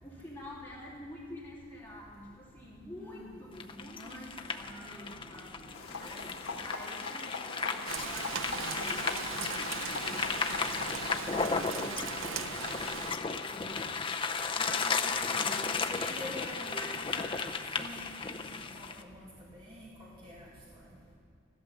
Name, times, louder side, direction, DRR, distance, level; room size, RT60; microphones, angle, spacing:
voice 1, 0.0-5.7 6.6-12.9 13.5-14.2 15.3-15.9, left 1 dB, 10° left, -6 dB, 2.9 m, -48 dB
sound 1, 3.6-19.0, left 5 dB, 25° left, 0.6 m, -35 dB
voice 2, 3.9-5.3 5.9-6.2 14.6-19.3 19.5-20.8, equal, 25° right, -6 dB, 2.5 m, -46 dB
sound 2, 5.7-11.5, left 3 dB, 85° left, 1.9 m, -42 dB
Rain, 7.9-13.2, right 8 dB, 70° right, 0.5 m, -39 dB
16.0 x 12.0 x 6.9 m, 2.3 s
head